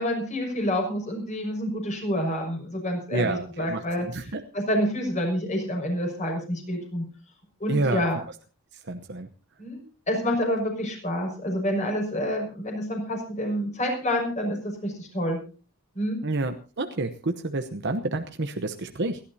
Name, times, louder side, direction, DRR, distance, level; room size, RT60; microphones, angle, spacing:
voice 1, 0.0-4.1 4.5-7.0 7.6-8.2 9.6-15.4 15.9-16.2, equal, 35° left, 2 dB, 6.0 m, -28 dB
voice 2, 3.1-4.4 7.7-8.1 8.9-9.3 16.2-19.2, right 2 dB, 50° right, 6 dB, 0.9 m, -29 dB
29.0 x 11.5 x 2.8 m, 0.35 s
head